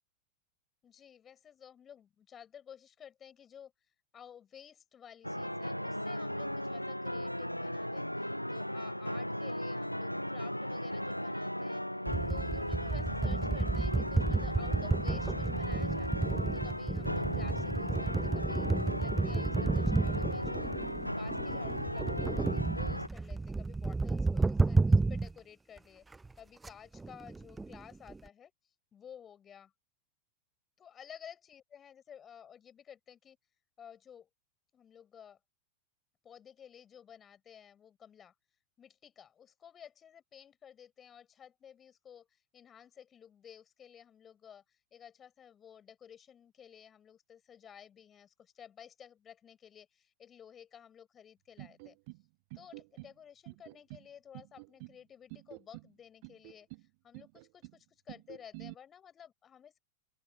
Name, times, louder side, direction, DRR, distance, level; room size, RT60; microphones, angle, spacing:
voice 1, 0.8-3.7 4.1-11.9 12.3-20.7 21.1-26.1 26.4-29.7 30.8-33.4 33.8-34.3 34.7-35.4 36.2-38.3 38.8-52.0 52.6-59.8, left 8 dB, 25° left, 7.0 m, -54 dB
sound 1, 5.2-23.1, equal, 90° left, 0.4 m, -36 dB
sound 2, 12.1-25.3 25.8-25.9 26.1-26.3 26.6-26.7 26.9-28.3, right 3 dB, 10° right, 0.4 m, -31 dB
sound 3, 51.6-52.2 52.5-53.1 53.4-54.1 54.3-55.0 55.3-55.9 56.2-56.8 57.1-57.8 58.1-58.7, right 29 dB, 45° right, 0.8 m, -48 dB
open air
figure-of-eight pair, 90°, 0 cm